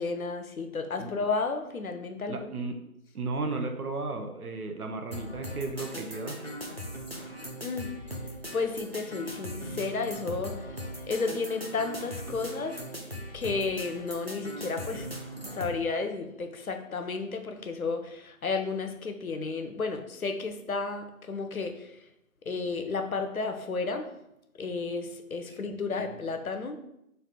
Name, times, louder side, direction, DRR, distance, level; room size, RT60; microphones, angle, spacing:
voice 1, 0.0-2.5 7.2-7.3 7.6-7.9 8.5-10.7 11.1-12.8 13.3-15.1 15.5-21.9 22.5-24.1 24.6-26.8, left 4 dB, 70° left, 7 dB, 0.6 m, -32 dB
voice 2, 2.3-2.8 3.1-6.4 25.7-26.1, right 3 dB, 80° right, 4 dB, 0.7 m, -34 dB
sound 1, 5.1-15.8, equal, 45° right, 0.5 m, -39 dB
3.3 x 2.4 x 4.1 m, 0.82 s
figure-of-eight pair, 175°, 44 cm